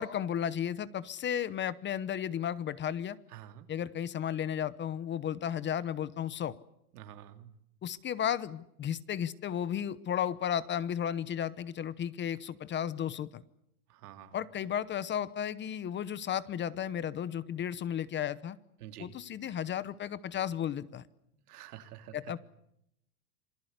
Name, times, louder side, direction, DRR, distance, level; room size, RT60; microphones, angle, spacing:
voice 1, 0.0-3.2 3.7-6.5 7.8-13.4 14.3-18.6 19.0-21.0 22.1-22.4, left 9 dB, 25° left, 17 dB, 0.9 m, -34 dB
voice 2, 3.3-3.7 6.9-7.5 13.9-14.4 18.8-19.1 21.5-22.1, right 11 dB, 80° right, 7 dB, 3.0 m, -48 dB
27.0 x 19.5 x 8.2 m, 0.78 s
supercardioid pair, 130°, 45 cm